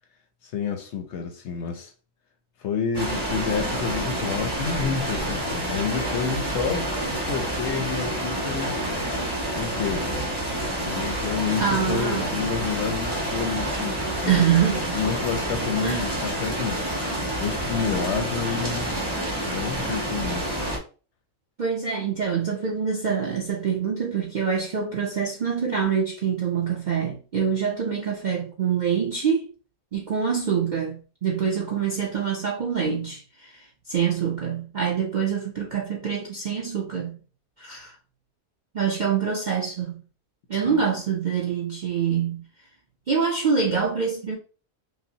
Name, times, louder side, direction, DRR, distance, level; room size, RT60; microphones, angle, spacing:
voice 1, 0.4-1.9 2.6-6.9 7.3-9.2 9.5-10.1 10.9-14.5 14.9-19.0 19.4-20.5 40.5-40.8, left 6 dB, 65° left, 0.8 m, -29 dB
sound 1, 2.9-20.8, right 1 dB, 20° right, 1.1 m, -28 dB
voice 2, 11.6-12.3 14.3-14.9 15.8-16.1 21.6-29.5 29.9-37.2 37.6-37.9 38.7-39.9 40.5-42.4 43.1-44.4, right 7 dB, 60° right, 0.5 m, -25 dB
5.5 x 2.0 x 2.7 m
omnidirectional pair, 1.5 m